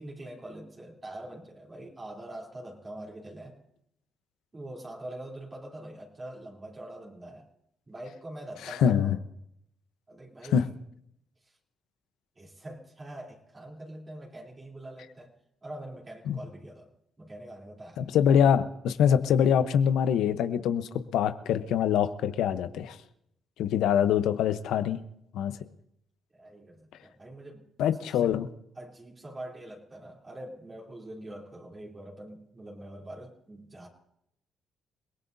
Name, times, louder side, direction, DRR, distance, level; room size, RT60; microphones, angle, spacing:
voice 1, 0.0-3.6 4.5-7.5 7.9-9.2 10.1-10.7 11.4-11.5 12.4-15.3 15.6-16.9 17.2-18.1 26.3-27.7 28.1-28.3 28.8-33.9, right 1 dB, 30° right, -3 dB, 3.3 m, -44 dB
voice 2, 8.7-9.2 10.5-10.6 16.3-16.4 18.0-23.0 23.6-25.0 25.3-25.5 27.8-28.5, left 8 dB, 85° left, 11 dB, 0.9 m, -24 dB
29.0 x 18.0 x 2.7 m, 0.77 s
cardioid pair, 90°, 0 cm